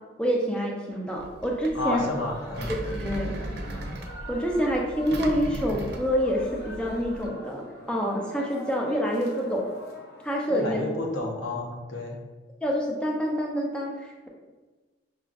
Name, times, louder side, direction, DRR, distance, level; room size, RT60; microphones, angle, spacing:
voice 1, 0.2-2.0 2.9-3.3 4.3-7.6 7.9-9.7 10.2-10.8 12.6-14.3, equal, 5° left, -1 dB, 0.5 m, -27 dB
Engine, 1.2-7.3, right 1 dB, 60° right, 0.4 m, -37 dB
voice 2, 1.7-2.7 10.5-12.2, left 1 dB, 90° left, 0 dB, 0.8 m, -31 dB
sound 1, 1.8-10.8, left 1 dB, 55° left, 0.6 m, -44 dB
5.6 x 2.4 x 2.5 m, 1.3 s
head